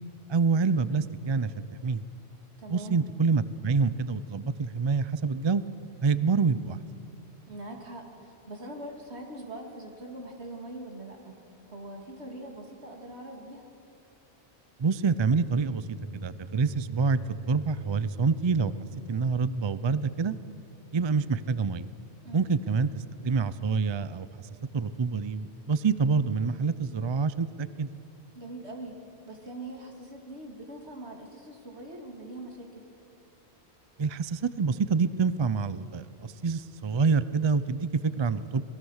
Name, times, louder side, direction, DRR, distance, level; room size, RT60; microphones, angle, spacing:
voice 1, 0.3-1.5 1.8-2.0 2.7-5.6 6.0-6.8 14.8-17.2 17.5-18.7 19.1-20.3 20.9-21.9 22.3-24.3 24.7-27.9 34.0-38.6, right 5 dB, 40° right, 15 dB, 0.4 m, -27 dB
voice 2, 2.6-3.0 7.5-11.4 11.7-13.7 22.2-22.5 28.3-29.0 29.3-32.9, right 1 dB, 70° right, 2 dB, 2.8 m, -42 dB
sound 1, 15.6-20.6, right 3 dB, 30° left, 7.6 m, -45 dB
26.0 x 19.5 x 6.4 m, 2.8 s
omnidirectional pair, 1.1 m